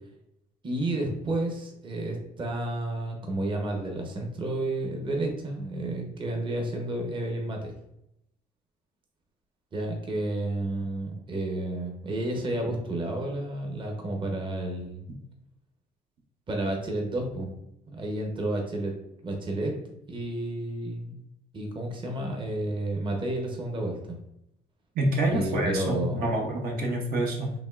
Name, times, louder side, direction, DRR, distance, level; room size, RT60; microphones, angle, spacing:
voice 1, 0.6-7.7 9.7-15.0 16.5-17.6 17.9-18.9 19.2-19.7 20.1-21.2 21.5-24.1 25.3-26.3, right 1 dB, 30° right, 1 dB, 0.9 m, -31 dB
voice 2, 25.0-27.5, right 1 dB, 60° right, 0 dB, 0.9 m, -27 dB
5.1 x 3.1 x 2.4 m, 0.81 s
cardioid pair, 110°, 17 cm